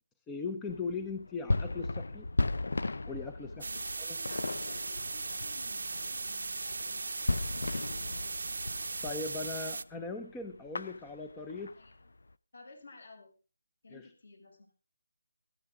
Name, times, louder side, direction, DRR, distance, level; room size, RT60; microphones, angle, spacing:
voice 1, 0.3-2.3 3.1-3.7 4.0-4.2 9.0-11.7 13.9-14.0, left 4 dB, 5° left, 6 dB, 0.6 m, -39 dB
sound 1, 0.7-9.6 9.9-10.1 10.4-12.3, left 2 dB, 75° left, 0.7 m, -36 dB
voice 2, 3.4-8.6 9.0-9.9 11.4-12.1 12.5-13.3 13.8-14.7, left 3 dB, 55° left, 3 dB, 6.7 m, -56 dB
sound 2, 3.6-9.8, right 3 dB, 65° right, 0.7 m, -38 dB
16.0 x 14.0 x 3.7 m, 0.33 s
hypercardioid pair, 175°, 0 cm